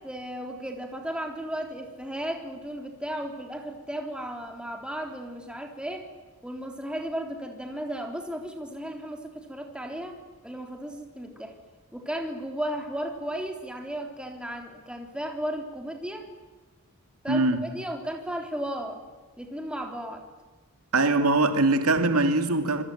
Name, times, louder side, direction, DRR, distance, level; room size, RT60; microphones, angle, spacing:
voice 1, 0.0-6.1 6.4-11.5 11.9-16.3 17.2-19.0 19.4-20.2, right 1 dB, 5° right, 3.6 m, -35 dB
voice 2, 17.3-17.6 20.9-22.8, right 2 dB, 80° right, 2.6 m, -22 dB
26.5 x 23.5 x 9.2 m
head